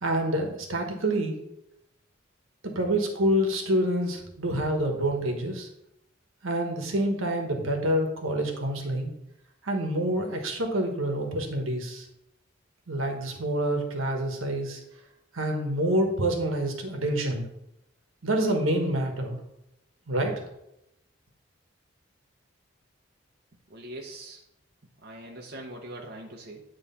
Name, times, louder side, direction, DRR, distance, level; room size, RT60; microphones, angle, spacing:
voice 1, 0.0-1.3 2.6-5.7 6.4-9.1 9.6-12.1 12.9-14.8 15.3-17.5 18.2-19.4 20.1-20.3, right 1 dB, 85° right, 3 dB, 1.3 m, -27 dB
voice 2, 23.7-24.4 25.0-26.6, right 1 dB, 50° right, 0 dB, 0.8 m, -42 dB
9.4 x 3.2 x 5.5 m, 0.84 s
head